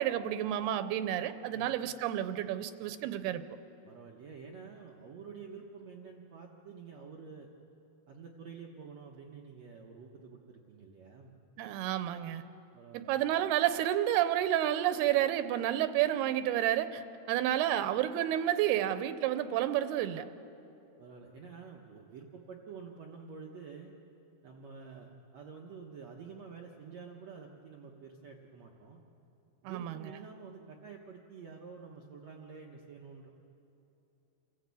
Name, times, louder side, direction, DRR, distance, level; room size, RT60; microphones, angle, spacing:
voice 1, 0.0-3.4 11.6-12.4 12.9-17.0 17.3-20.3 29.6-30.1, right 12 dB, 90° right, 11 dB, 2.8 m, -30 dB
voice 2, 3.9-7.5 8.1-11.4 12.7-13.1 21.0-23.9 24.4-29.0 29.6-33.3, right 5 dB, 65° right, 0 dB, 1.8 m, -49 dB
28.5 x 15.0 x 8.3 m, 2.9 s
omnidirectional pair, 4.5 m